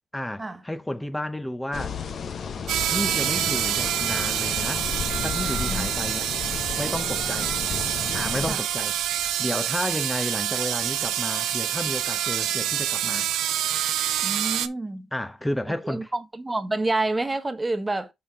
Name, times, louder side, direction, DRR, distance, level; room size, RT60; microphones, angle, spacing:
voice 1, 0.1-2.0 2.8-4.9 5.2-6.3 6.8-7.5 8.1-9.0 9.4-13.3 15.1-16.1, left 1 dB, 10° left, 0.7 m, -32 dB
sound 1, 1.7-8.5, left 6 dB, 50° left, 0.8 m, -33 dB
sound 2, 2.7-14.7, right 11 dB, 85° right, 0.6 m, -27 dB
voice 2, 14.2-15.1 15.7-18.1, right 2 dB, 15° right, 1.2 m, -28 dB
5.6 x 5.2 x 3.6 m
cardioid pair, 90°, 0 cm